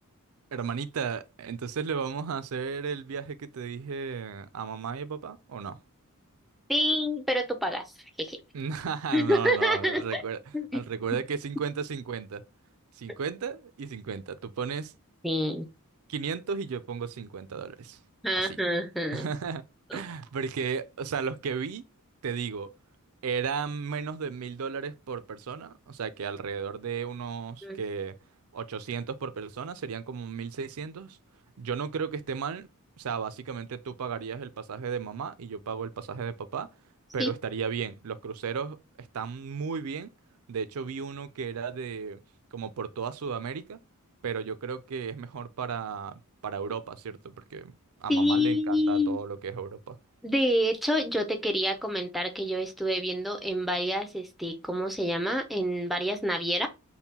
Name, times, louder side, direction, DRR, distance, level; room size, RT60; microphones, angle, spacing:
voice 1, 0.5-5.8 8.5-10.4 10.7-12.4 13.0-14.9 16.1-18.0 19.1-19.6 19.9-21.8 22.2-22.7 23.2-28.1 28.5-31.2 31.6-32.7 33.0-36.7 37.1-40.1 40.5-42.2 42.5-43.8 44.2-50.0, right 6 dB, 75° right, 0.4 m, -34 dB
voice 2, 6.7-7.9 8.2-8.4 9.1-10.2 10.5-10.8 15.2-15.7 18.2-19.3 19.9-20.0 27.6-27.8 37.2-37.3 48.1-49.2 50.2-56.7, equal, ahead, 0.5 m, -27 dB
5.4 x 2.2 x 2.8 m
head